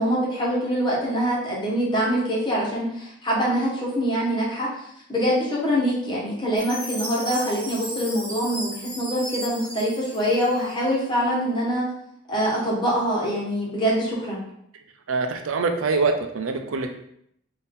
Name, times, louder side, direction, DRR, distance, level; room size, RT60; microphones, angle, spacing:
voice 1, 0.0-4.7 5.1-11.8 12.3-14.4, equal, 20° left, -5 dB, 1.2 m, -24 dB
Chime, 6.6-10.9, equal, 5° left, 1.7 m, -35 dB
voice 2, 15.1-17.0, right 4 dB, 90° right, 5 dB, 0.5 m, -24 dB
4.1 x 2.7 x 3.7 m, 0.72 s
head